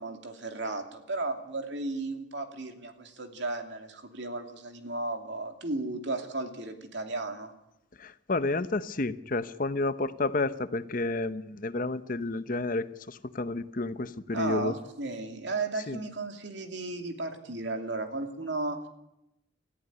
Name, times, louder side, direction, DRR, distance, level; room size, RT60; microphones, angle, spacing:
voice 1, 0.0-7.5 14.3-18.9, right 2 dB, 65° right, 5 dB, 2.7 m, -34 dB
voice 2, 8.0-14.7 15.9-16.0, left 2 dB, 45° left, 13 dB, 0.8 m, -31 dB
19.5 x 14.0 x 9.5 m, 0.85 s
head